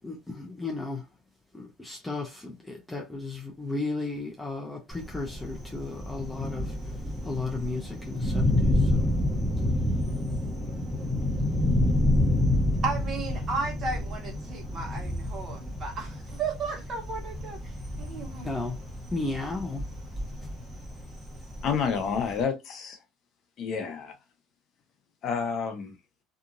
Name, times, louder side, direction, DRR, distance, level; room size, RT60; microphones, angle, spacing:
voice 1, 0.0-1.0 1.5-6.7 7.2-9.0 18.4-18.8 19.1-19.8, left 3 dB, 10° left, 0.5 m, -34 dB
Thunder, 4.9-22.4, left 1 dB, 5° right, 1.1 m, -29 dB
voice 2, 12.8-17.6 18.0-18.5, right 4 dB, 40° right, 1.4 m, -34 dB
voice 3, 21.6-23.0 23.6-24.1 25.2-25.9, left 6 dB, 45° left, 0.7 m, -29 dB
2.8 x 2.5 x 2.5 m
cardioid pair, 140°, 0 cm